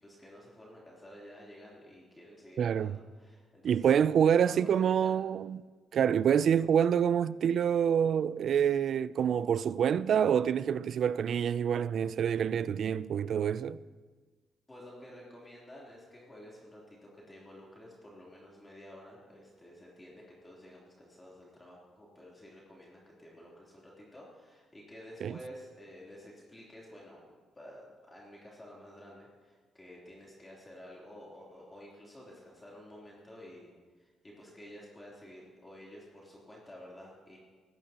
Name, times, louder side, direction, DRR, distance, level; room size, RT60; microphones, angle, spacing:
voice 1, 0.0-5.1 14.7-33.7 34.0-37.4, equal, 20° left, 3.3 m, -51 dB
voice 2, 2.6-3.0 3.6-5.6 5.9-13.8 25.2-25.3, right 8 dB, 60° right, 0.4 m, -27 dB
17.5 x 15.5 x 2.9 m
cardioid pair, 90°, 0 cm